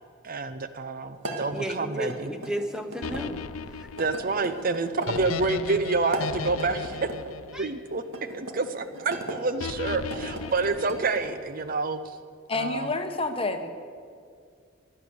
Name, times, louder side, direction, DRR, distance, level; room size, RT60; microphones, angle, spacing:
voice 1, 0.2-2.3 4.0-8.0 8.3-12.2 12.5-12.9, right 3 dB, 45° right, 11 dB, 0.6 m, -28 dB
sound 1, 1.2-3.2 4.0-5.3 6.0-7.2 8.1-9.4 10.0-11.4, right 1 dB, 75° right, 1.9 m, -38 dB
voice 2, 1.5-3.4 3.7-3.9 7.5-7.7, right 1 dB, 5° right, 7 dB, 0.9 m, -33 dB
sound 2, 3.0-8.3 9.6-11.5, left 5 dB, 85° left, 0.5 m, -36 dB
voice 3, 12.5-13.7, left 3 dB, 25° left, 6 dB, 1.1 m, -28 dB
16.0 x 11.0 x 6.9 m, 2.2 s
head